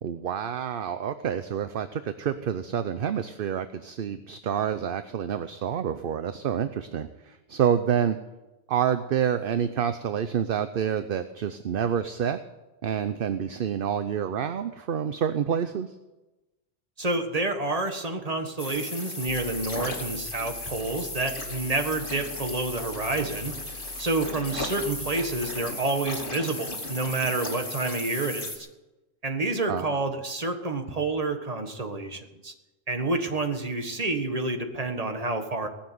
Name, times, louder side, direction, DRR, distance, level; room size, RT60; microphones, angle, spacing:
voice 1, 0.0-8.2 8.7-12.4 12.8-15.9 29.7-30.0, right 8 dB, 60° right, 11 dB, 0.8 m, -28 dB
voice 2, 17.0-23.5 24.0-28.7 29.2-32.5 32.9-35.7, right 2 dB, 35° right, 5 dB, 1.6 m, -29 dB
sound 1, 18.6-28.6, left 1 dB, 50° left, 2.5 m, -36 dB
sound 2, 19.3-25.5, left 8 dB, 30° left, 1.2 m, -47 dB
18.5 x 7.2 x 9.4 m, 1.1 s
omnidirectional pair, 1.2 m